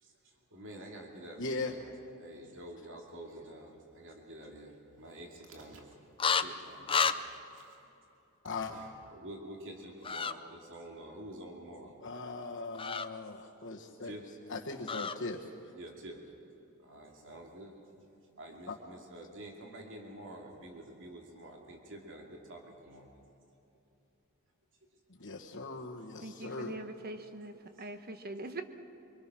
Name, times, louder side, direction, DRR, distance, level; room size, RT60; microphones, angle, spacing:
voice 1, 0.0-1.8 2.2-5.9 6.2-7.2 7.5-7.9 8.7-12.0 14.0-14.3 15.8-16.2 16.8-17.7 18.4-23.1, right 1 dB, 60° right, 1 dB, 2.5 m, -48 dB
voice 2, 1.4-1.7 8.4-8.8 12.0-14.1 14.5-15.5 18.7-18.8 25.2-26.8, left 3 dB, 60° left, -4 dB, 1.4 m, -39 dB
sound 1, 6.2-6.4 6.9-7.2 10.0-10.3 12.7-13.1 14.9-15.2, left 6 dB, 25° left, 0.5 m, -29 dB
voice 3, 26.2-28.6, right 2 dB, 45° right, 8 dB, 1.3 m, -42 dB
24.5 x 23.5 x 6.1 m, 2.8 s
head